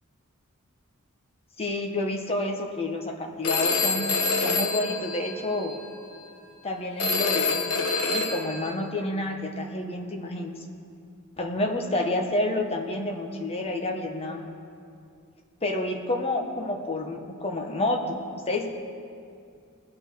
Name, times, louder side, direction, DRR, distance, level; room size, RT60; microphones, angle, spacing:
voice 1, 1.6-5.7 6.6-10.5 11.4-14.5 15.6-18.0 18.5-18.7, left 2 dB, 25° left, 2 dB, 1.2 m, -29 dB
Telephone, 3.4-5.8 7.0-8.7, left 3 dB, 85° left, 1.3 m, -26 dB
20.5 x 7.1 x 4.7 m, 2.4 s
head